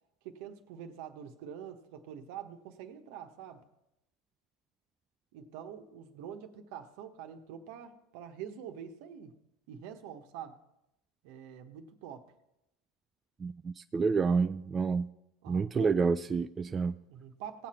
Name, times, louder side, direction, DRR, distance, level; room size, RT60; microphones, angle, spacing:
voice 1, 0.2-3.6 5.3-9.3 9.7-10.6 11.2-12.3 15.4-16.0 17.1-17.7, right 9 dB, 65° right, 7 dB, 1.2 m, -45 dB
voice 2, 13.4-15.1 15.5-16.9, right 5 dB, 25° right, 10 dB, 0.4 m, -29 dB
17.5 x 7.5 x 4.4 m, 0.87 s
hypercardioid pair, 90°, 0 cm